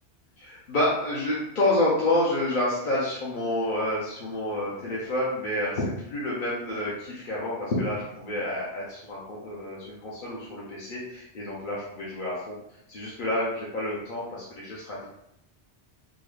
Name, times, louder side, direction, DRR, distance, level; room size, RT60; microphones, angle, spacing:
voice 1, 0.4-15.1, left 1 dB, 50° left, -7 dB, 0.8 m, -29 dB
3.8 x 2.2 x 3.2 m, 0.79 s
omnidirectional pair, 1.2 m